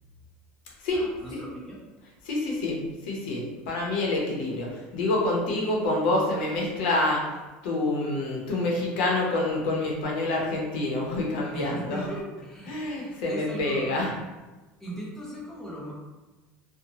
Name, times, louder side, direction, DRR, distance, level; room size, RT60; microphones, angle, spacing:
voice 1, 0.9-1.8 11.5-14.0 14.8-15.9, right 1 dB, 5° left, -6 dB, 0.8 m, -38 dB
voice 2, 2.2-2.8 3.0-7.2 7.6-12.0 12.7-14.1, left 2 dB, 85° left, -2 dB, 0.8 m, -27 dB
2.8 x 2.1 x 2.8 m, 1.2 s
supercardioid pair, 135°, 5 cm